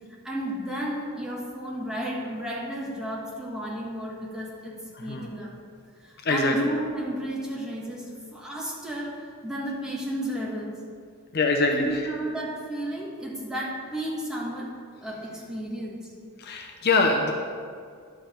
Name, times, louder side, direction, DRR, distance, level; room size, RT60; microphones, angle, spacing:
voice 1, 0.2-4.7 5.0-5.5 6.0-10.8 11.7-14.7 15.0-16.1, right 1 dB, 5° right, -4 dB, 1.5 m, -32 dB
voice 2, 4.9-5.3 6.2-6.5 11.3-11.8 16.4-17.3, left 3 dB, 45° left, 2 dB, 0.7 m, -23 dB
10.5 x 7.3 x 4.4 m, 2.2 s
head